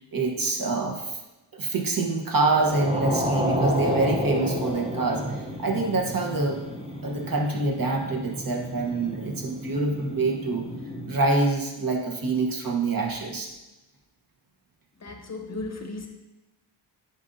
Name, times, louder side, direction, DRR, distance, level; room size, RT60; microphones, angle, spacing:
voice 1, 0.1-1.2 1.5-6.6 7.0-10.7 11.1-13.5, right 3 dB, 45° right, 1 dB, 1.1 m, -26 dB
sound 1, 2.4-11.1, equal, 15° right, 0.7 m, -31 dB
voice 2, 15.0-16.1, left 2 dB, 35° left, 3 dB, 0.8 m, -35 dB
9.6 x 5.3 x 2.7 m, 1.0 s
wide cardioid pair, 115°, 45 cm